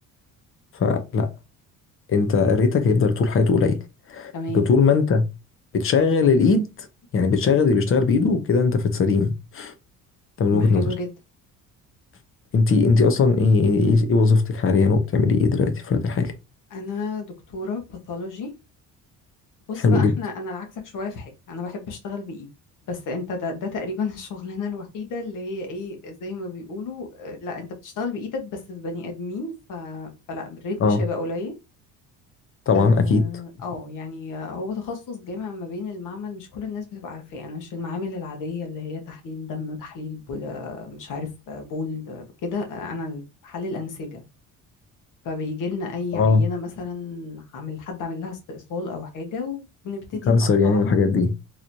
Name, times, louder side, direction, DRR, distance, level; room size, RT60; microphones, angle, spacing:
voice 1, 0.7-1.3 2.1-3.8 4.1-5.2 5.7-6.9 7.1-9.7 10.4-10.9 12.5-16.3 19.8-20.1 30.8-31.0 32.7-33.2 46.1-46.4 50.3-51.3, left 4 dB, 35° left, 0.8 m, -19 dB
voice 2, 4.3-4.6 10.5-11.1 16.7-18.5 19.7-22.5 22.9-31.5 32.7-44.2 45.2-51.0, left 3 dB, 60° left, 1.3 m, -32 dB
3.9 x 3.1 x 2.7 m
cardioid pair, 120°, 35 cm